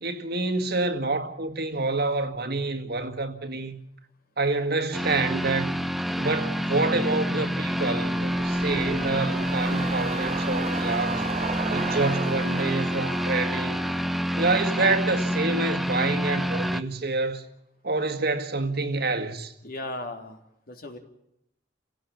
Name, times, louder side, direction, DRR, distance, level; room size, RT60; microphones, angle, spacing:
voice 1, 0.0-3.7 4.4-5.8 6.2-11.3 11.7-13.8 14.4-17.4 17.8-19.5, right 3 dB, 60° right, 2.0 m, -27 dB
sound 1, 4.9-16.8, equal, ahead, 0.8 m, -28 dB
sound 2, 7.3-15.8 16.1-16.2, right 4 dB, 40° right, 1.3 m, -36 dB
voice 2, 19.6-20.4 20.7-21.0, left 2 dB, 55° left, 3.2 m, -36 dB
30.0 x 17.0 x 7.0 m
head